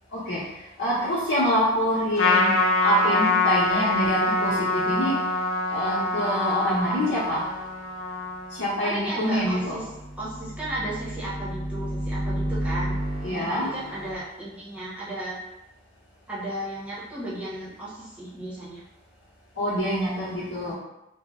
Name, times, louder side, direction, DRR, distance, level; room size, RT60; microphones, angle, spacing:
voice 1, 0.1-5.2 5.7-7.5 8.5-9.8 13.2-13.7 19.6-20.7, equal, 70° left, -12 dB, 1.0 m, -26 dB
Trumpet, 2.2-8.9, left 2 dB, 85° left, 0.5 m, -25 dB
voice 2, 8.8-9.8 10.2-13.0 13.3-15.4 16.3-18.8 20.6-20.7, right 1 dB, 5° right, -8 dB, 0.9 m, -34 dB
sound 1, 9.4-14.1, right 1 dB, 45° left, 0.7 m, -32 dB
3.0 x 2.1 x 3.7 m, 0.93 s
head